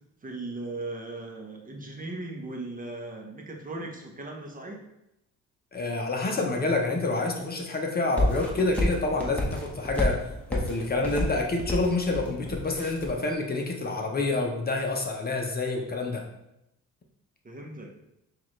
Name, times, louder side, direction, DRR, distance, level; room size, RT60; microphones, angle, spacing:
voice 1, 0.2-4.8 17.4-17.9, right 2 dB, 30° right, 1 dB, 0.8 m, -38 dB
voice 2, 5.7-16.2, left 3 dB, 30° left, 1 dB, 0.7 m, -28 dB
sound 1, 8.2-13.1, left 1 dB, 5° left, 1.0 m, -30 dB
6.1 x 2.4 x 3.1 m, 0.84 s
cardioid pair, 90°, 30 cm